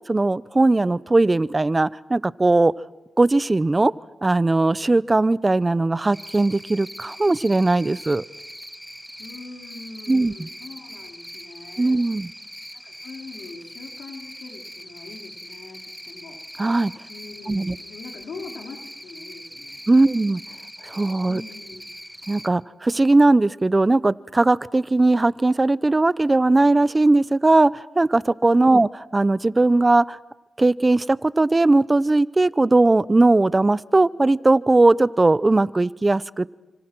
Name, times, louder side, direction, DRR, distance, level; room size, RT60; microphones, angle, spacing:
voice 1, 0.1-2.7 3.2-3.9 4.2-8.2 10.1-10.5 11.8-12.3 16.6-16.9 17.5-17.8 19.9-20.4 20.8-21.4 22.3-30.2 30.6-36.4, right 2 dB, 25° right, 18 dB, 0.8 m, -19 dB
Cricket, 6.1-22.5, equal, ahead, 1.5 m, -41 dB
voice 2, 9.2-12.0 12.7-16.4 17.1-19.9 21.3-21.9 28.4-28.6, left 4 dB, 80° left, 1 dB, 3.8 m, -42 dB
29.0 x 26.0 x 6.2 m, 1.1 s
cardioid pair, 60°, 0 cm